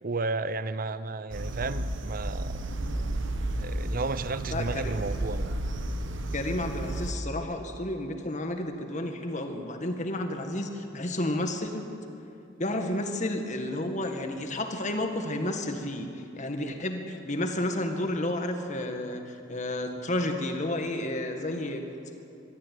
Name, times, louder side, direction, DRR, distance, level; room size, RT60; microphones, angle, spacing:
voice 1, 0.0-2.6 3.6-5.5, right 3 dB, 45° right, 14 dB, 0.7 m, -33 dB
sound 1, 1.3-7.1, right 1 dB, 70° right, 1.1 m, -32 dB
voice 2, 4.5-5.0 6.3-11.9 12.6-21.8, left 1 dB, 40° left, 5 dB, 1.8 m, -31 dB
22.5 x 14.0 x 9.4 m, 2.7 s
head